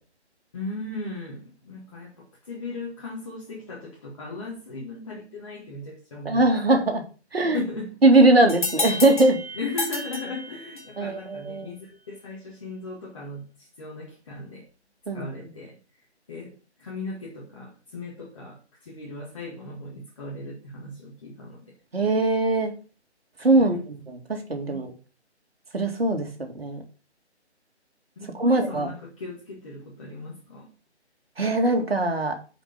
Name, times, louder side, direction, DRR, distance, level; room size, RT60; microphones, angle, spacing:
voice 1, 0.5-6.6 7.4-8.0 9.5-14.7 15.1-15.8 16.3-21.7 23.6-23.8 24.7-24.8 28.2-30.7, left 2 dB, 30° left, 1.9 m, -37 dB
voice 2, 6.2-7.0 7.3-7.6 8.0-9.4 11.0-11.7 15.1-15.2 21.9-22.7 23.4-24.9 25.7-26.8 28.3-28.9 31.4-32.3, right 2 dB, 60° right, 2.4 m, -21 dB
sound 1, 8.5-11.1, left 3 dB, 45° left, 2.2 m, -31 dB
9.0 x 5.2 x 5.1 m
figure-of-eight pair, 155°, 34 cm